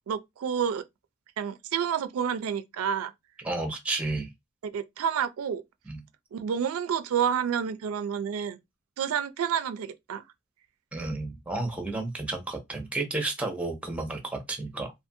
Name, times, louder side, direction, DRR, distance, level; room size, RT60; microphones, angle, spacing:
voice 1, 0.1-0.8 1.4-3.1 4.6-5.6 6.3-8.6 9.0-10.2, right 8 dB, 85° right, 0.3 m, -29 dB
voice 2, 3.4-4.3 5.9-6.0 10.9-14.9, right 2 dB, 5° right, 0.6 m, -32 dB
2.5 x 2.5 x 2.6 m
head